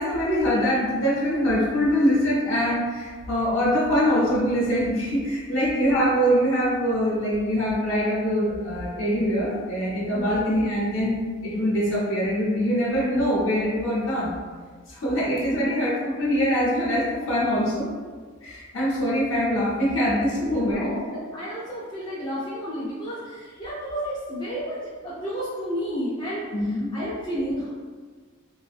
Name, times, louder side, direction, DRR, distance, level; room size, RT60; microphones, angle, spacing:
voice 1, 0.0-14.3 14.9-17.9 18.4-20.8 26.5-26.9, equal, 65° left, -6 dB, 0.6 m, -23 dB
voice 2, 10.1-10.4 15.4-15.7 20.4-27.7, equal, 20° left, -8 dB, 0.3 m, -32 dB
2.4 x 2.0 x 2.5 m, 1.5 s
head